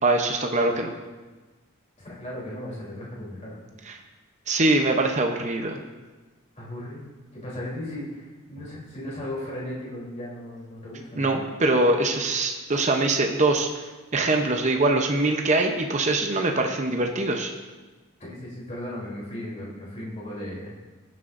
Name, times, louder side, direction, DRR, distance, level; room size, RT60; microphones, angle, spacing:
voice 1, 0.0-0.9 3.9-4.0 4.5-5.8 11.2-13.8 14.1-17.5, right 2 dB, 35° right, 3 dB, 0.8 m, -23 dB
voice 2, 2.0-3.6 6.5-7.0 7.3-11.4 18.2-20.8, left 1 dB, 35° left, -6 dB, 3.4 m, -36 dB
19.5 x 7.6 x 2.6 m, 1.3 s
head